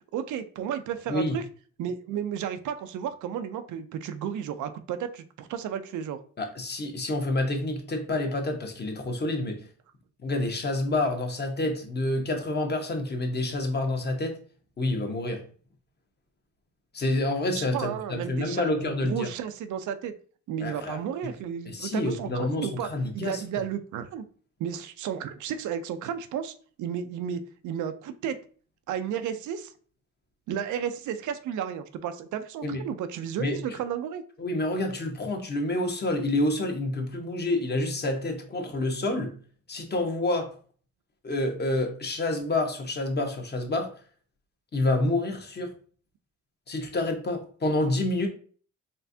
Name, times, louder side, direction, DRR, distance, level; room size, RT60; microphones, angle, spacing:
voice 1, 0.1-1.4 1.8-6.2 17.6-20.1 20.5-22.9 23.1-24.3 24.6-28.4 28.9-29.7 30.5-34.2, right 8 dB, 80° right, 0.5 m, -33 dB
voice 2, 6.4-9.6 10.2-14.4 14.8-15.4 16.9-19.3 20.6-21.0 21.7-23.4 32.6-32.8 33.4-33.6 34.4-39.3 39.7-40.5 41.2-43.9 44.7-45.7 46.7-48.3, left 2 dB, 35° left, 1.1 m, -28 dB
4.3 x 3.3 x 2.7 m
cardioid pair, 90°, 30 cm